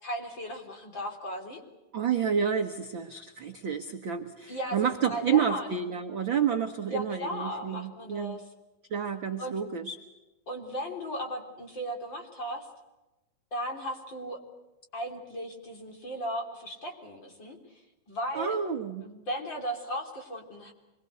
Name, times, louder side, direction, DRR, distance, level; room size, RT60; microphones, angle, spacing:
voice 1, 0.0-1.6 4.5-5.8 6.8-8.4 9.4-9.6 10.5-12.7 13.5-14.4 14.9-17.8 18.1-18.6 19.0-20.7, equal, 30° left, 3 dB, 3.8 m, -36 dB
voice 2, 1.9-8.4 8.9-9.9 18.3-19.1, right 7 dB, 60° right, 5 dB, 1.2 m, -29 dB
26.0 x 22.5 x 8.1 m, 1.1 s
omnidirectional pair, 4.1 m